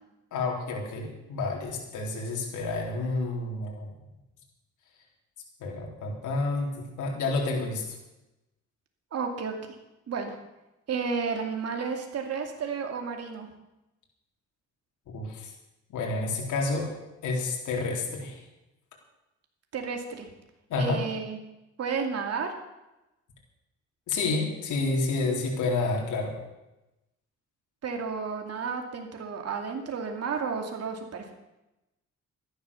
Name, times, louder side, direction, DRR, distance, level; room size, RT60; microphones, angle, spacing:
voice 1, 0.3-3.9 5.6-8.0 15.1-15.5 15.9-16.9 17.2-18.4 20.7-21.0 24.1-26.3, left 3 dB, 80° left, -1 dB, 4.1 m, -29 dB
voice 2, 9.1-9.5 10.1-10.4 10.9-13.5 19.7-20.3 20.8-21.4 21.8-22.5 27.8-31.3, right 5 dB, 55° right, 3 dB, 2.5 m, -32 dB
13.5 x 11.0 x 7.1 m, 0.96 s
cardioid pair, 90°, 30 cm